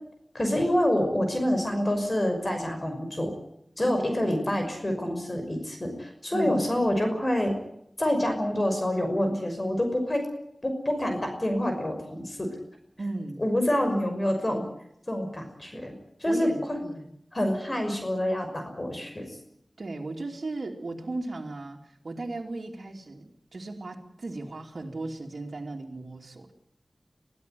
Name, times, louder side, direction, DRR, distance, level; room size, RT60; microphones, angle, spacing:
voice 1, 0.3-3.3 3.8-7.5 8.0-10.2 10.6-12.5 13.4-14.6 15.1-15.9 16.2-16.5 17.3-19.3, left 1 dB, 35° left, 5 dB, 6.0 m, -27 dB
voice 2, 3.8-4.1 6.3-6.6 13.0-13.4 16.2-17.0 19.8-26.5, right 2 dB, 70° right, -1 dB, 3.0 m, -36 dB
23.5 x 16.0 x 9.4 m, 0.76 s
wide cardioid pair, 65°, 0 cm